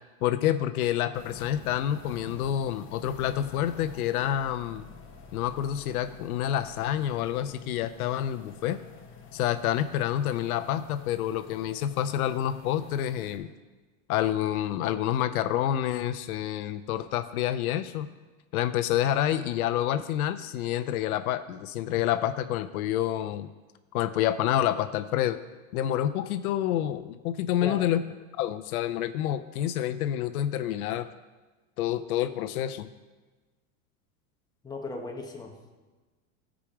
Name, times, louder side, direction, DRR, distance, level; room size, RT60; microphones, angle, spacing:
voice 1, 0.2-4.8 5.3-8.8 9.3-13.5 14.1-18.1 18.5-23.5 23.9-25.4 25.7-28.0 28.4-31.1 31.8-32.9, left 11 dB, 85° left, 11 dB, 0.7 m, -28 dB
sound 1, 1.1-13.4, left 5 dB, 30° left, 1.1 m, -47 dB
voice 2, 34.6-35.7, left 3 dB, 10° left, 1 dB, 1.1 m, -37 dB
13.5 x 5.1 x 4.9 m, 1.3 s
supercardioid pair, 135°, 42 cm